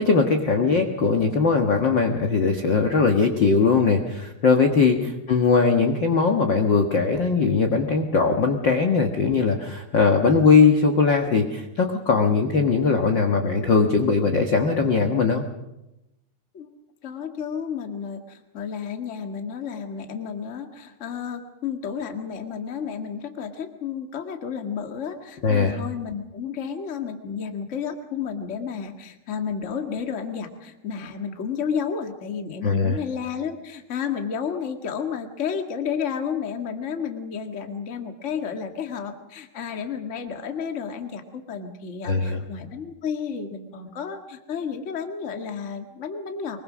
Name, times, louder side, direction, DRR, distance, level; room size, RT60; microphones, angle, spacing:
voice 1, 0.0-15.4 25.4-25.8 32.6-33.0 42.0-42.4, left 4 dB, 65° left, 3 dB, 1.1 m, -20 dB
voice 2, 17.0-46.6, left 7 dB, 40° left, 5 dB, 1.0 m, -31 dB
24.0 x 22.0 x 6.3 m, 0.91 s
omnidirectional pair, 4.7 m